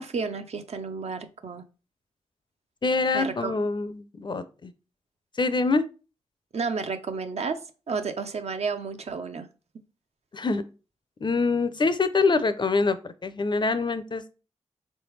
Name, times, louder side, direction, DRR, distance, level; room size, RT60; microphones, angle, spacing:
voice 1, 0.0-1.6 3.1-3.5 6.5-7.6 7.9-9.5, right 4 dB, 65° right, 8 dB, 0.5 m, -31 dB
voice 2, 2.8-4.7 5.4-5.8 10.3-10.6 11.2-14.3, left 3 dB, 40° left, 13 dB, 0.4 m, -25 dB
3.4 x 3.2 x 3.1 m, 0.34 s
cardioid pair, 45°, 12 cm